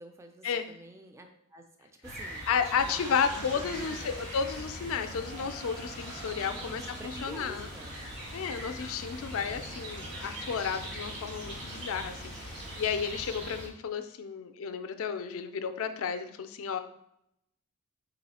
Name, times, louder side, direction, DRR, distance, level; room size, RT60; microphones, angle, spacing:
voice 1, 0.0-4.1 6.4-8.0, right 1 dB, 10° right, 5 dB, 0.3 m, -48 dB
sound 1, 2.0-13.7, equal, 55° right, 1.4 m, -42 dB
voice 2, 2.5-7.7 8.3-16.8, left 6 dB, 65° left, 9 dB, 0.4 m, -32 dB
sound 2, 2.8-12.9, right 1 dB, 80° right, 1.5 m, -48 dB
4.1 x 3.1 x 4.1 m, 0.77 s
head